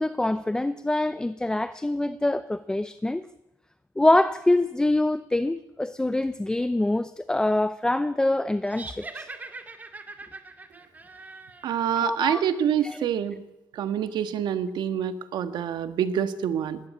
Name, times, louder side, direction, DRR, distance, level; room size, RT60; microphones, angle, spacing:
voice 1, 0.0-3.2 4.0-9.3 11.9-12.4 12.8-13.0, left 1 dB, 10° left, 0.6 m, -25 dB
sound 1, 8.7-12.1, right 3 dB, 20° right, 2.2 m, -42 dB
voice 2, 11.6-13.4 13.7-16.8, right 9 dB, 80° right, 1.6 m, -26 dB
19.5 x 17.0 x 8.8 m
cardioid pair, 120°, 8 cm